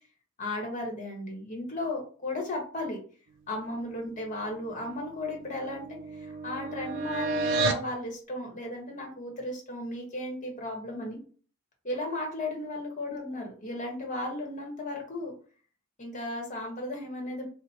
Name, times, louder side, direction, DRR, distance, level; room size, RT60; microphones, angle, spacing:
voice 1, 0.4-3.0 3.5-5.9 6.1-11.2 11.8-15.3 16.0-17.5, left 1 dB, 35° left, 0 dB, 1.1 m, -35 dB
sound 1, 4.7-7.9, right 3 dB, 55° right, 0.5 m, -32 dB
2.9 x 2.1 x 4.1 m, 0.41 s
head